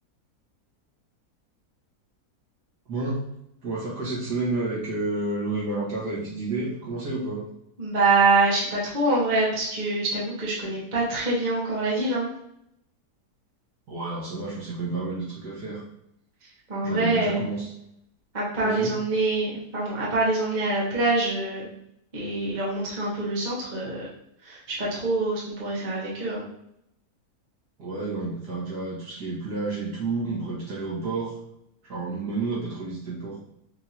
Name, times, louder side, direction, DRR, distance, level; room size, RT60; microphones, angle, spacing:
voice 1, 2.9-3.2 3.6-7.4 13.9-15.8 16.8-17.7 18.6-18.9 27.8-31.4 31.8-33.4, right 3 dB, 75° right, -7 dB, 2.1 m, -30 dB
voice 2, 7.8-12.3 16.7-17.4 18.3-21.7 22.1-24.1 24.4-26.4, right 2 dB, 30° right, -6 dB, 1.2 m, -25 dB
5.3 x 2.8 x 2.8 m, 0.77 s
omnidirectional pair, 1.7 m